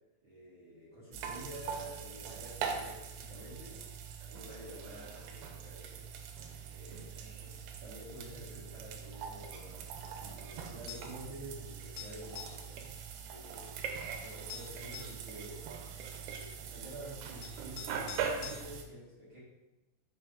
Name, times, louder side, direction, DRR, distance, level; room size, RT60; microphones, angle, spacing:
voice 1, 0.2-6.0 6.7-9.9 10.2-12.9 13.2-16.0 16.2-19.4, right 1 dB, 70° right, -9 dB, 1.1 m, -49 dB
sound 1, 1.1-18.8, right 6 dB, 90° right, 2.6 m, -42 dB
sound 2, 10.9-11.2 12.0-12.6 14.0-14.1 14.5-15.2 16.7-16.8 17.4-18.6, left 9 dB, 80° left, 1.9 m, -46 dB
5.7 x 3.4 x 5.1 m, 1.1 s
omnidirectional pair, 4.5 m